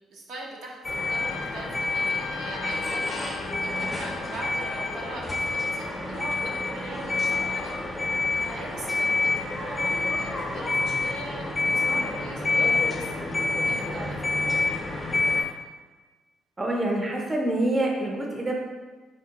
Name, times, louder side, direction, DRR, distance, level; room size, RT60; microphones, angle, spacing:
voice 1, 0.1-7.7 8.4-14.5, right 2 dB, 80° right, -2 dB, 0.6 m, -41 dB
sound 1, 0.8-15.4, left 3 dB, 25° left, 0.6 m, -27 dB
Trumpet, 1.1-5.3, left 6 dB, 70° left, 0.3 m, -40 dB
voice 2, 16.6-18.5, right 1 dB, 25° right, 0 dB, 0.5 m, -26 dB
3.4 x 2.2 x 2.8 m, 1.3 s
cardioid pair, 90°, 0 cm